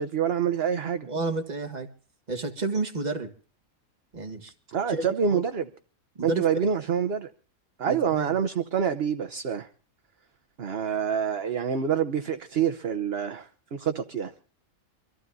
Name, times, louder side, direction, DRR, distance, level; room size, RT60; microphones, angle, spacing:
voice 1, 0.0-1.1 4.7-5.7 6.2-7.3 7.8-9.7 10.6-14.3, right 7 dB, 50° right, 8 dB, 1.1 m, -27 dB
voice 2, 1.1-1.9 2.3-3.3 4.1-4.5 4.9-5.4 6.2-6.5 7.9-8.4, right 3 dB, 30° right, 4 dB, 1.8 m, -30 dB
25.0 x 15.0 x 2.7 m, 0.41 s
omnidirectional pair, 1.5 m